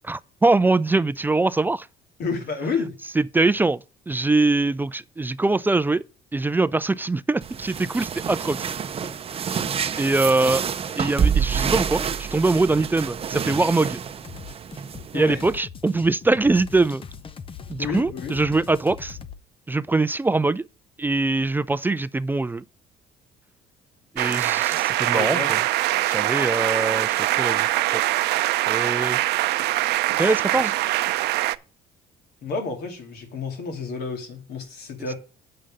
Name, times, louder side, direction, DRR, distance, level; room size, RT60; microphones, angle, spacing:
voice 1, 0.1-1.9 3.2-3.8 4.1-6.0 6.3-8.7 10.0-10.7 11.0-14.0 15.1-17.0 17.7-19.2 19.7-20.6 21.0-22.6 24.1-25.6 26.1-27.7 27.9-28.0 28.7-29.2 30.1-30.7, right 3 dB, 10° right, 0.3 m, -22 dB
voice 2, 2.2-3.0 15.1-15.4 17.8-18.4 24.9-25.6 32.4-35.1, left 4 dB, 70° left, 2.5 m, -30 dB
sound 1, 7.4-15.6, right 7 dB, 35° right, 0.8 m, -28 dB
sound 2, 14.2-19.4, left 6 dB, 30° left, 0.8 m, -40 dB
sound 3, 24.2-31.6, right 16 dB, 80° right, 0.5 m, -23 dB
7.7 x 5.5 x 6.5 m
cardioid pair, 110°, 17 cm